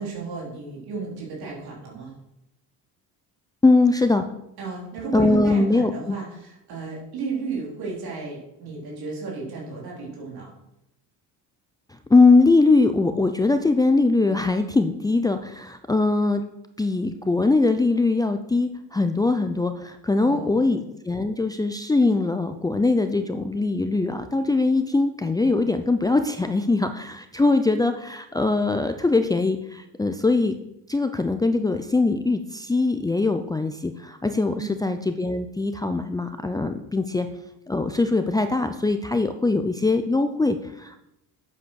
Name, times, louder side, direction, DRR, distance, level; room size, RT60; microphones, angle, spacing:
voice 1, 0.0-2.1 4.6-10.5 20.2-20.7 34.5-34.8, right 4 dB, 75° right, -3 dB, 3.8 m, -33 dB
voice 2, 3.6-4.2 5.1-6.2 12.1-16.4 16.8-30.6 30.9-37.3 37.7-41.0, left 3 dB, 10° left, 7 dB, 0.6 m, -21 dB
8.4 x 7.7 x 6.4 m, 0.83 s
cardioid pair, 120°, 37 cm